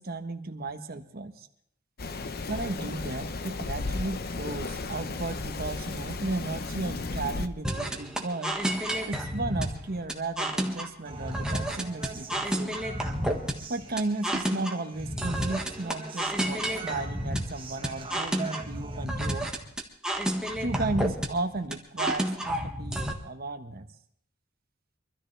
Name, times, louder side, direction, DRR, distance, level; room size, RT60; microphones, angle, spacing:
voice 1, 0.0-1.5 2.5-8.6 9.1-12.8 13.7-19.5 20.6-23.9, right 2 dB, 50° right, 6 dB, 1.2 m, -34 dB
Rain, 2.0-7.5, left 3 dB, 50° left, 0.8 m, -34 dB
sound 1, 7.6-23.1, equal, 5° right, 1.5 m, -31 dB
Human voice, 11.0-19.0, right 4 dB, 25° right, 1.6 m, -44 dB
24.0 x 13.5 x 3.3 m, 0.67 s
head